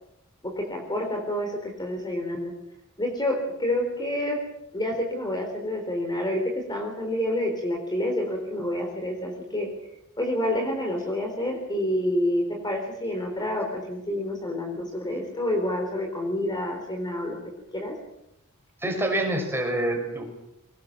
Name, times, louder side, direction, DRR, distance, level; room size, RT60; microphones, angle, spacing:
voice 1, 0.4-2.5 3.0-4.4 4.7-9.7 10.2-17.4 17.7-17.9, left 1 dB, 20° left, 2 dB, 3.9 m, -28 dB
voice 2, 18.8-20.2, right 1 dB, 10° right, 1 dB, 6.0 m, -26 dB
24.0 x 19.0 x 7.4 m, 0.84 s
head